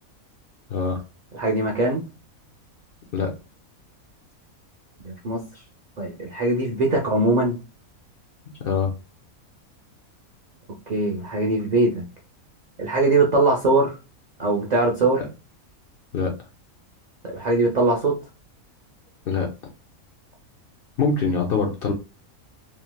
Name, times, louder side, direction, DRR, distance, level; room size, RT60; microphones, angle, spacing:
voice 1, 1.3-2.0 5.0-5.4 6.0-7.6 10.9-12.0 12.8-14.0 14.4-15.2 17.2-18.1, right 2 dB, 75° right, 0 dB, 0.3 m, -21 dB
voice 2, 8.6-8.9 15.2-15.3 16.1-16.3 19.3-19.5 21.0-21.9, left 5 dB, 60° left, 2 dB, 0.6 m, -23 dB
3.1 x 2.7 x 2.2 m, 0.29 s
omnidirectional pair, 1.5 m